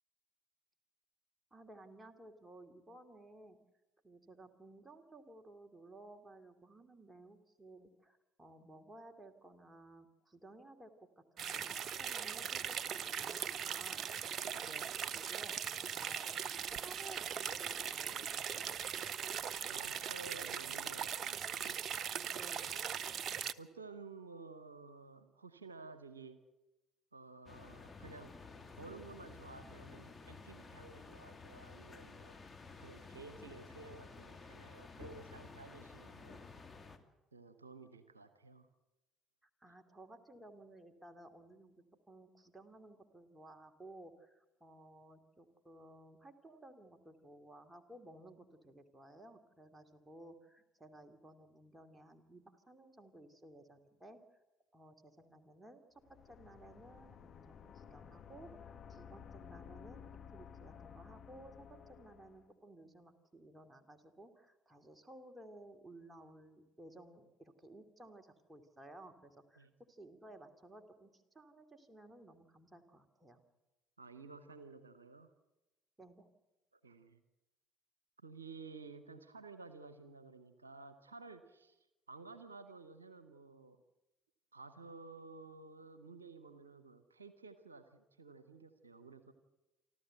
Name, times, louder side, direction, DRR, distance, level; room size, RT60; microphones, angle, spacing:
voice 1, 1.5-3.6 4.0-14.0 14.5-15.6 16.0-18.8 22.3-22.7 39.4-54.2 54.7-60.0 60.3-73.4 76.0-76.3, right 1 dB, 15° right, 5 dB, 2.6 m, -57 dB
sound 1, 11.4-23.5, right 8 dB, 45° right, 0.7 m, -40 dB
voice 2, 14.4-14.9 19.7-21.8 22.5-22.8 23.6-26.4 27.1-28.4 28.8-32.4 32.8-36.4 37.3-38.7 69.6-69.7 74.0-75.3 76.8-77.2 78.2-81.8 82.1-83.8 84.5-89.3, right 4 dB, 85° right, 11 dB, 0.8 m, -53 dB
sound 2, 27.5-37.0, left 4 dB, 20° left, 2.2 m, -53 dB
sound 3, 56.0-62.5, left 7 dB, 45° left, 1.5 m, -54 dB
28.0 x 12.5 x 7.9 m, 1.0 s
figure-of-eight pair, 55°, 0 cm